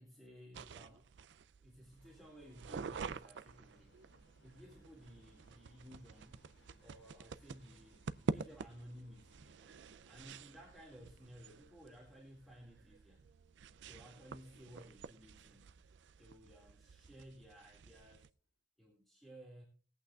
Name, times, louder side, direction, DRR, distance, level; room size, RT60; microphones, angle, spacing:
voice 1, 0.0-1.3 1.6-4.0 4.4-6.4 6.8-9.4 10.1-13.2 13.9-15.7 16.2-18.3 18.8-19.6, equal, ahead, -3 dB, 2.0 m, -57 dB
sound 1, 0.5-18.3, right 5 dB, 70° right, 0.4 m, -48 dB
Subway metro underground, 2.0-16.1 16.4-16.5 17.3-17.4 17.7-17.8 18.4-18.5, right 1 dB, 80° left, 4.2 m, -71 dB
20.0 x 8.6 x 2.3 m, 0.37 s
head